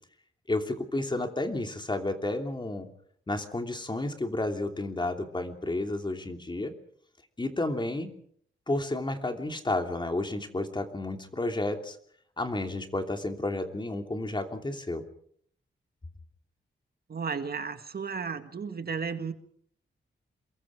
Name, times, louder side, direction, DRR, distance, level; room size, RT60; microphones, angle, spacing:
voice 1, 0.5-2.9 3.3-6.7 7.4-8.2 8.7-12.0 12.4-15.0, left 2 dB, 25° left, 5 dB, 3.0 m, -31 dB
voice 2, 17.1-19.3, right 5 dB, 50° right, 8 dB, 1.9 m, -34 dB
28.0 x 22.5 x 4.9 m, 0.62 s
wide cardioid pair, 125°, 20 cm